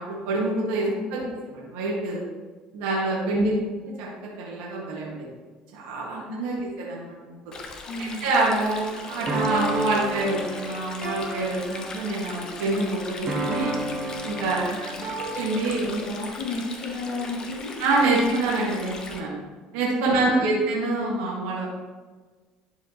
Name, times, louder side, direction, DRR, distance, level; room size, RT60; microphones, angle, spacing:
voice 1, 0.0-1.2 1.5-2.3 2.7-3.5 4.0-4.1 4.4-5.3 5.7-7.4 8.0-13.8 14.2-14.9 15.2-15.8 17.8-19.4 19.7-21.7, right 2 dB, 80° right, -4 dB, 1.9 m, -26 dB
voice 2, 0.9-1.3 3.3-3.7 6.2-6.7 7.9-8.3 14.6-15.2 15.8-17.8 20.1-20.6, left 2 dB, 60° left, -6 dB, 2.3 m, -34 dB
Stream, 7.5-19.2, left 3 dB, 30° left, 0.9 m, -39 dB
sound 1, 9.1-16.3, right 1 dB, 40° right, 1.5 m, -32 dB
11.0 x 4.9 x 3.1 m, 1.4 s
cardioid pair, 120°, 2 cm